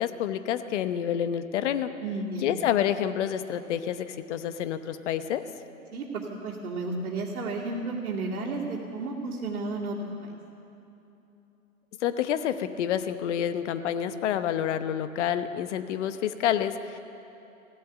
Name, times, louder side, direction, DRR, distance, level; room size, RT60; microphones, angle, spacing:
voice 1, 0.0-1.9 2.4-5.4 12.0-17.0, left 10 dB, 50° left, 11 dB, 1.0 m, -28 dB
voice 2, 2.0-2.6 5.9-10.3, right 3 dB, 70° right, -6 dB, 2.5 m, -33 dB
16.0 x 7.9 x 9.8 m, 3.0 s
hypercardioid pair, 125°, 44 cm